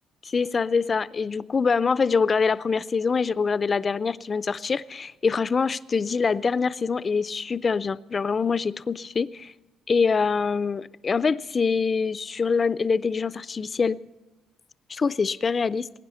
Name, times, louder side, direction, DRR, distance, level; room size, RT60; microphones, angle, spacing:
voice 1, 0.3-9.5 9.9-14.0 14.9-15.9, left 5 dB, 35° left, 0.5 m, -24 dB
21.5 x 10.0 x 5.6 m
cardioid pair, 90°, 0 cm